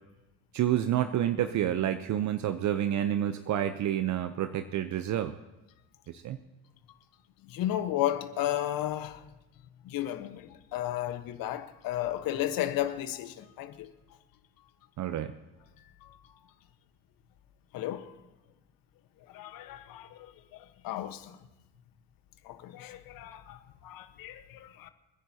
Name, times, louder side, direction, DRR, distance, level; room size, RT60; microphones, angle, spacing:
voice 1, 0.5-5.3 6.1-6.4 15.0-15.4, right 11 dB, 50° right, 0.8 m, -29 dB
voice 2, 7.5-9.2 9.8-13.9 16.0-16.1 17.7-18.1 19.3-20.3 20.8-21.3 22.4-24.9, left 13 dB, 65° left, 1.3 m, -33 dB
29.0 x 10.5 x 2.9 m
supercardioid pair, 80°, 37 cm